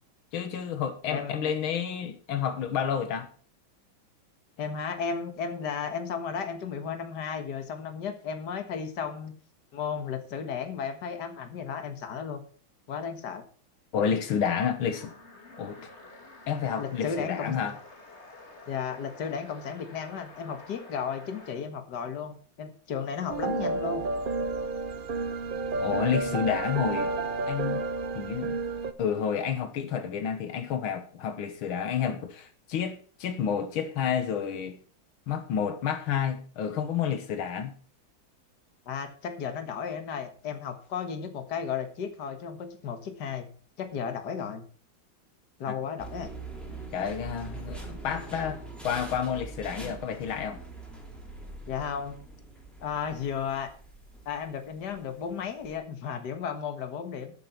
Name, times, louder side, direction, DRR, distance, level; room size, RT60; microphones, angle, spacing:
voice 1, 0.3-3.3 13.9-15.1 15.6-15.8 16.5-17.8 25.8-27.1 27.5-27.8 28.2-28.6 29.0-34.8 35.3-37.7 45.7-45.8 46.9-50.6, left 8 dB, 85° left, 2.0 m, -30 dB
voice 2, 4.6-9.3 9.7-12.4 12.9-13.4 16.8-17.5 18.7-24.0 38.9-43.5 43.8-44.6 45.6-46.3 51.7-52.2 52.8-53.7 54.3-57.3, left 6 dB, 55° left, 2.0 m, -34 dB
sound 1, 14.9-21.6, left 2 dB, 35° left, 2.7 m, -49 dB
sound 2, 23.3-28.9, right 3 dB, 80° right, 0.4 m, -31 dB
sound 3, 46.0-55.8, right 3 dB, ahead, 2.9 m, -43 dB
12.5 x 7.0 x 5.8 m
omnidirectional pair, 2.2 m